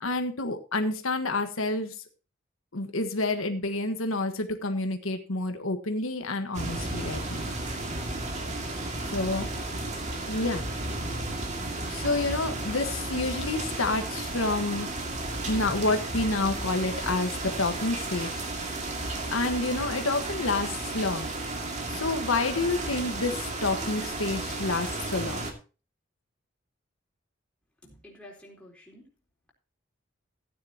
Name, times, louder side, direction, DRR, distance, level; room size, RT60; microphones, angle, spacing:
voice 1, 0.0-1.9 2.7-7.5 9.1-9.5 10.3-10.6 11.9-14.9 15.5-18.4 19.3-21.3 21.9-25.5, left 2 dB, 80° left, 6 dB, 1.4 m, -29 dB
sound 1, 6.5-25.5, right 2 dB, 35° right, 2.2 m, -33 dB
voice 2, 27.8-29.1, left 1 dB, 5° left, -2 dB, 3.9 m, -50 dB
15.0 x 9.8 x 2.9 m, 0.33 s
head